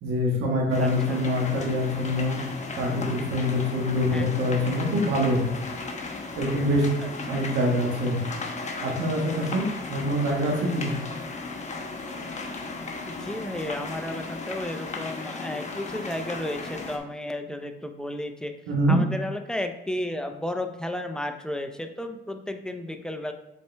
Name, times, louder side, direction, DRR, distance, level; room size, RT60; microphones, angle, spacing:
voice 1, 0.0-2.4 2.8-5.4 6.4-6.8 7.3-8.2 8.8-9.6 9.9-10.9 18.7-19.0, equal, 90° right, -1 dB, 1.6 m, -25 dB
sound 1, 0.7-17.0, left 3 dB, 35° left, 1.0 m, -36 dB
voice 2, 0.8-1.2 4.1-4.3 7.0-7.4 10.5-10.9 13.1-18.5 18.9-23.3, left 1 dB, 5° left, 6 dB, 0.6 m, -33 dB
6.5 x 4.3 x 3.4 m, 0.90 s
cardioid pair, 90°, 20 cm